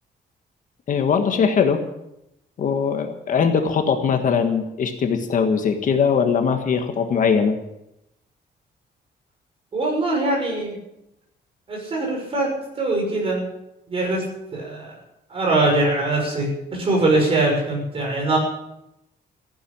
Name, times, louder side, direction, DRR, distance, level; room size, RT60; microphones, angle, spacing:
voice 1, 0.9-1.8 2.6-7.5, left 6 dB, 50° left, 6 dB, 1.6 m, -20 dB
voice 2, 9.7-10.8 11.7-13.4 13.9-14.2 14.5-14.9 15.3-18.4, right 2 dB, 30° right, 0 dB, 6.2 m, -22 dB
15.0 x 11.0 x 8.7 m, 0.86 s
cardioid pair, 180°, 17 cm